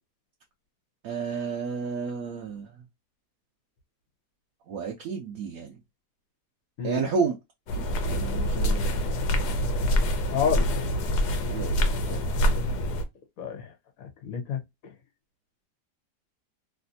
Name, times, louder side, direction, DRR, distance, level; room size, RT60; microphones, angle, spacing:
voice 1, 1.0-2.7 4.7-5.7 6.8-7.4 7.7-8.9 11.5-12.2 12.5-12.6, right 5 dB, 65° right, 1.1 m, -31 dB
sound 1, 7.7-13.0, equal, 80° left, 1.2 m, -25 dB
voice 2, 10.3-10.8 13.4-13.7 14.0-14.9, left 7 dB, 65° left, 1.2 m, -30 dB
3.3 x 2.6 x 2.5 m
omnidirectional pair, 1.7 m